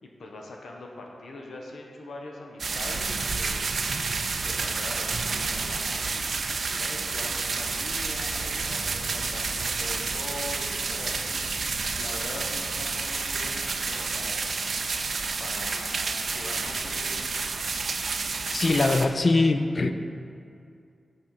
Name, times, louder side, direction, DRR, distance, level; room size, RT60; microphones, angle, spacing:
voice 1, 0.0-3.6 4.4-11.4 11.9-14.6 15.4-17.2, left 2 dB, 80° left, 0 dB, 0.9 m, -42 dB
sound 1, 2.6-19.1, right 4 dB, 50° right, 0.4 m, -30 dB
voice 2, 18.5-19.9, left 3 dB, 35° left, 8 dB, 0.3 m, -22 dB
6.2 x 4.3 x 6.3 m, 2.4 s
wide cardioid pair, 180°, 0 cm